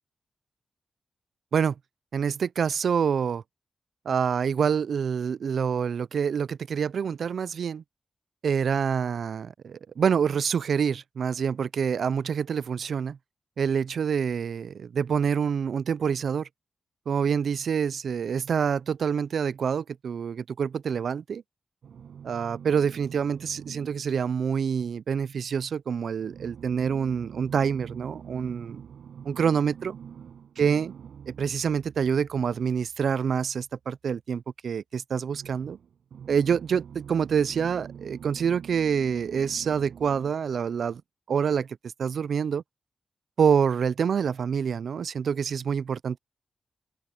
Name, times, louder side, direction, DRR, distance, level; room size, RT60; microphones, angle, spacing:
voice 1, 2.1-3.4 4.1-7.8 8.4-13.2 13.6-16.5 17.1-21.4 22.2-28.8 29.2-30.0 30.6-30.9 31.3-35.8 36.3-41.0 41.3-41.7 42.0-42.6 43.4-46.2, right 7 dB, 65° right, 0.3 m, -26 dB
sound 1, 21.8-24.4 26.2-33.2 35.2-40.3, right 8 dB, 90° right, 5.6 m, -44 dB
wide cardioid pair, 150°, 0 cm